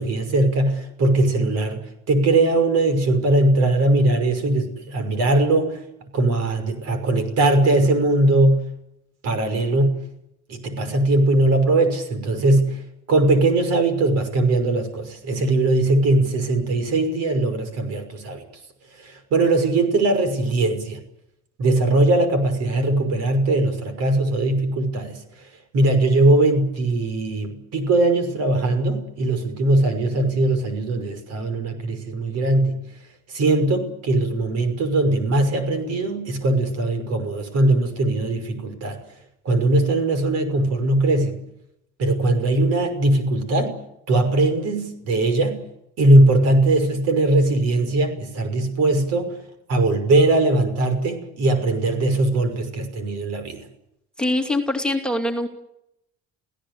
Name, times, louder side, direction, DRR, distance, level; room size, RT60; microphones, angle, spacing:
voice 1, 0.0-1.8 2.1-5.8 6.1-8.7 9.2-10.0 10.5-12.8 13.1-18.4 19.0-21.0 21.6-25.2 25.7-32.8 33.3-39.0 39.4-41.4 42.0-43.8 44.1-45.6 46.0-49.4 49.7-53.7, right 2 dB, 60° right, 9 dB, 5.9 m, -20 dB
voice 2, 54.2-55.5, left 1 dB, 5° left, 2 dB, 2.6 m, -23 dB
29.0 x 17.0 x 8.4 m, 0.83 s
cardioid pair, 135°, 29 cm